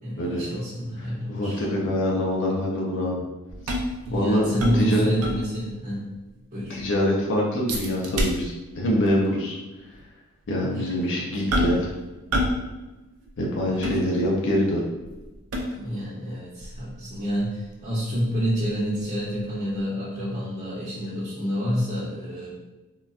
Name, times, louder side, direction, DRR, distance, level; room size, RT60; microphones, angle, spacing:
voice 1, 0.0-1.6 4.1-6.0 6.5-6.8 10.7-11.3 13.7-13.9 15.7-22.5, equal, 35° right, -10 dB, 0.8 m, -28 dB
voice 2, 1.3-3.2 4.1-4.5 4.7-5.1 6.7-9.5 10.5-11.9 13.4-14.8, equal, 55° left, -2 dB, 0.5 m, -24 dB
sound 1, 3.5-5.8 6.1-6.2 6.6-7.0 7.7-8.8 9.1-9.3 9.9-10.0 11.5-11.9 12.3-12.7 12.9-14.5 15.0-16.0 16.6-19.4 19.8-19.9, equal, 80° right, 0.5 m, -29 dB
3.8 x 2.2 x 2.4 m, 1.1 s
head